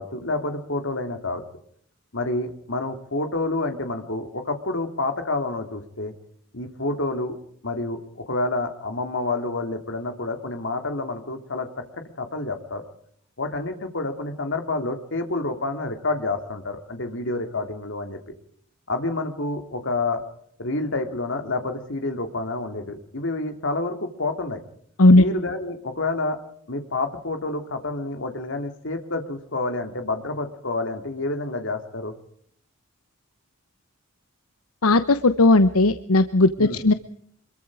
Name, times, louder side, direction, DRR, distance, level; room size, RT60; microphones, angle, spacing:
voice 1, 0.0-1.4 2.1-6.1 6.5-7.4 7.6-11.7 12.2-12.8 13.4-18.2 18.9-20.2 20.6-24.6 25.1-26.4 26.7-32.1 36.6-36.8, left 2 dB, 60° left, 6 dB, 3.0 m, -28 dB
voice 2, 34.8-36.9, left 2 dB, 80° left, 11 dB, 1.1 m, -16 dB
26.0 x 22.5 x 4.9 m, 0.65 s
head